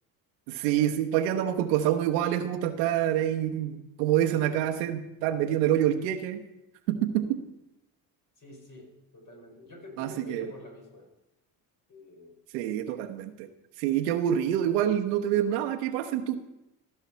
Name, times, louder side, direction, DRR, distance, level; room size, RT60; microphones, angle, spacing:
voice 1, 0.5-6.4 6.9-7.4 10.0-10.5 12.5-13.5 13.8-16.3, right 11 dB, 90° right, 6 dB, 1.0 m, -27 dB
voice 2, 8.4-11.1 11.9-12.4, equal, 40° left, 0 dB, 5.1 m, -46 dB
15.5 x 5.7 x 5.7 m, 0.90 s
supercardioid pair, 70°, 47 cm